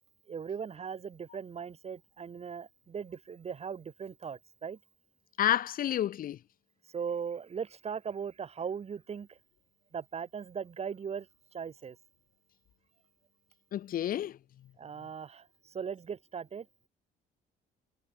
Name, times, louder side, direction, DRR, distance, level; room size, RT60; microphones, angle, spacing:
voice 1, 0.3-4.8 6.9-9.4 9.9-11.3 11.5-12.0 14.8-16.7, right 7 dB, 40° right, 4.6 m, -39 dB
voice 2, 5.4-6.4 13.7-14.4, left 11 dB, 55° left, 1.5 m, -29 dB
cardioid pair, 110°, 17 cm